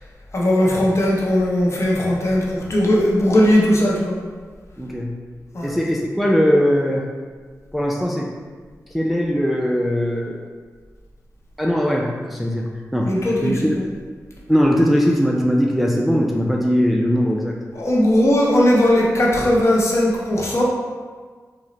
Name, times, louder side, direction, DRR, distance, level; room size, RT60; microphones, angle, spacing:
voice 1, 0.3-4.2 5.5-5.7 13.0-13.9 17.7-20.6, left 1 dB, 50° left, -4 dB, 0.7 m, -18 dB
voice 2, 4.8-5.2 5.6-7.1 7.7-8.3 8.9-10.4 11.6-13.1 13.4-13.7 14.5-17.6, equal, ahead, -1 dB, 0.3 m, -20 dB
3.9 x 2.0 x 2.9 m, 1.5 s
wide cardioid pair, 75°, 6 cm